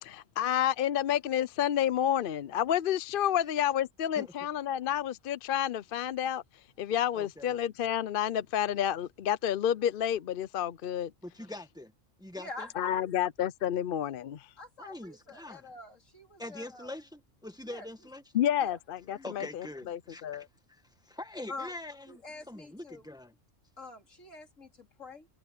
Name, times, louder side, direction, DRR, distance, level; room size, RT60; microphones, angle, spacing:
voice 1, 0.0-6.4 6.8-11.1 12.8-14.5 18.3-20.4, left 10 dB, 55° left, 0.6 m, -30 dB
voice 2, 7.1-7.5 11.2-11.9 12.2-12.7 14.8-15.7 16.4-18.2 19.2-23.3, left 1 dB, 5° right, 1.5 m, -44 dB
voice 3, 12.3-13.1 14.6-16.9 17.7-17.9 18.6-18.8 19.1-19.3 21.5-21.7 22.1-23.0 23.8-25.3, left 2 dB, 75° left, 4.1 m, -45 dB
omnidirectional pair, 1.3 m